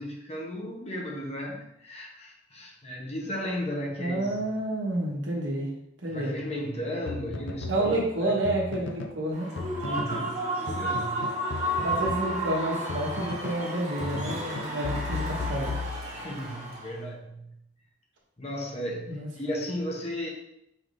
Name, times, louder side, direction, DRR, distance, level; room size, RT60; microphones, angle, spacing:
voice 1, 0.0-4.5 6.1-8.4 9.8-11.3 16.1-17.6 18.4-20.3, equal, 30° left, 0 dB, 0.7 m, -35 dB
voice 2, 4.0-5.7 6.0-6.3 7.7-9.5 11.8-15.7 19.1-19.3, right 1 dB, 75° right, -2 dB, 1.1 m, -29 dB
sound 1, 7.1-9.2 9.6-10.3 10.7-13.7 14.0-16.4, left 4 dB, 70° left, 0.4 m, -36 dB
Human voice / Cheering / Applause, 9.3-17.0, right 1 dB, 35° right, 1.1 m, -32 dB
5.0 x 3.4 x 2.5 m, 0.79 s
head